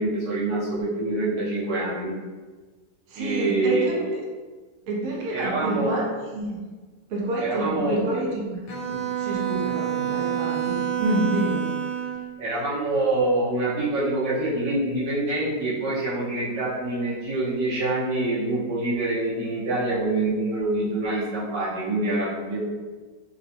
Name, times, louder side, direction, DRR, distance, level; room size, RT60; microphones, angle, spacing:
voice 1, 0.0-2.1 3.1-3.9 5.3-6.0 7.4-8.0 12.4-22.6, right 2 dB, 85° right, -8 dB, 1.6 m, -25 dB
voice 2, 3.1-4.2 4.9-6.1 6.3-6.5 7.1-8.6 8.9-11.7, right 1 dB, 60° right, -3 dB, 1.0 m, -28 dB
Bowed string instrument, 8.7-12.3, right 10 dB, 85° left, 1.2 m, -28 dB
3.8 x 2.2 x 2.6 m, 1.3 s
omnidirectional pair, 1.8 m